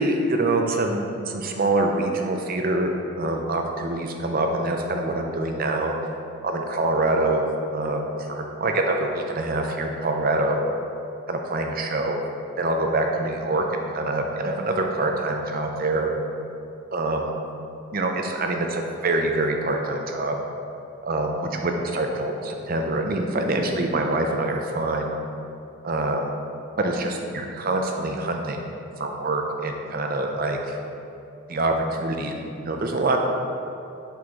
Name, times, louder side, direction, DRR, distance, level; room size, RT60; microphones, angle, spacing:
voice 1, 0.0-2.9 3.2-5.9 6.4-7.4 7.7-10.6 11.3-12.2 12.6-16.1 16.9-17.2 17.9-20.4 21.0-25.1 25.8-26.2 26.8-28.7 29.0-30.8 31.5-32.4 32.6-33.2, right 2 dB, 40° right, 3 dB, 0.6 m, -25 dB
7.7 x 4.3 x 3.6 m, 2.8 s
head